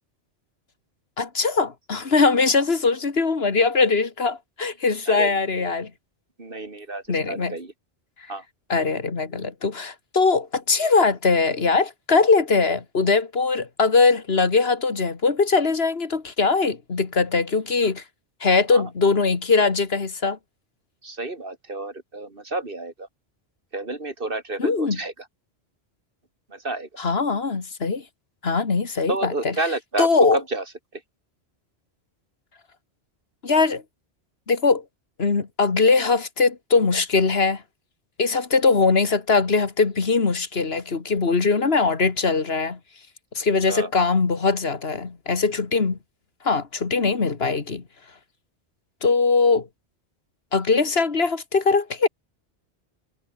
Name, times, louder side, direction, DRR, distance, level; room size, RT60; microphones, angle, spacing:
voice 1, 1.2-5.9 7.1-7.5 8.7-18.0 18.4-20.4 24.6-25.0 27.0-28.0 28.4-29.5 30.0-30.4 33.4-33.8 34.5-34.8 35.2-37.6 38.2-42.8 43.4-46.0 46.4-47.8 49.0-49.7 50.5-52.1, left 4 dB, 65° left, 2.0 m, -21 dB
voice 2, 5.1-5.7 6.4-7.7 8.3-8.4 18.7-18.9 21.0-23.1 23.7-25.3 26.5-26.9 29.1-30.6 30.9-31.0 43.7-43.9, right 2 dB, 55° right, 3.0 m, -30 dB
omnidirectional pair, 1.1 m